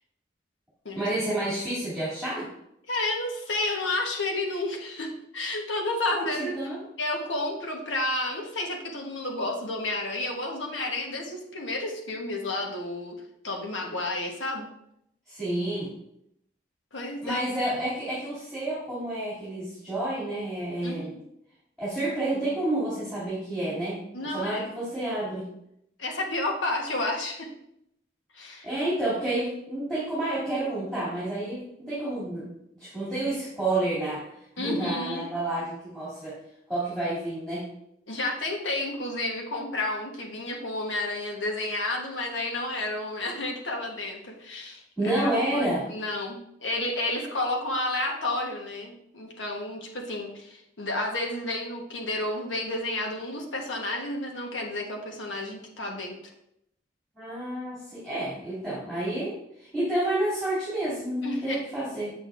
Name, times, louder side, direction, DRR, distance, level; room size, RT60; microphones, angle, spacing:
voice 1, 1.0-2.5 6.1-6.8 15.3-15.9 17.2-21.1 21.8-24.0 24.2-25.5 28.6-32.5 32.7-34.2 34.5-36.4 36.7-37.7 45.0-45.8 57.2-62.1, right 1 dB, 5° left, -12 dB, 2.6 m, -29 dB
voice 2, 2.9-6.5 7.0-13.1 13.4-14.7 16.9-17.4 20.8-21.2 24.1-24.7 26.0-27.5 28.3-28.7 34.6-35.2 38.1-56.2 61.2-61.6, left 2 dB, 90° left, 1 dB, 1.2 m, -31 dB
7.5 x 6.4 x 2.5 m, 0.77 s
head